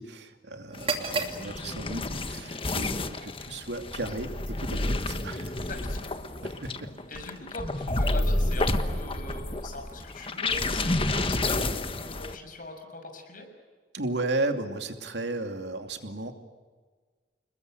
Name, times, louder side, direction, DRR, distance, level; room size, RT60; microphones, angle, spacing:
voice 1, 0.0-5.5 6.4-6.9 13.9-16.3, right 2 dB, 80° right, 6 dB, 2.6 m, -34 dB
sound 1, 0.7-12.4, left 2 dB, 30° left, 1.4 m, -30 dB
sound 2, 0.7-8.5, right 4 dB, 35° right, 2.9 m, -40 dB
voice 2, 5.6-6.1 7.1-13.5, left 2 dB, 50° left, 5 dB, 6.4 m, -42 dB
29.0 x 21.5 x 7.9 m, 1.5 s
head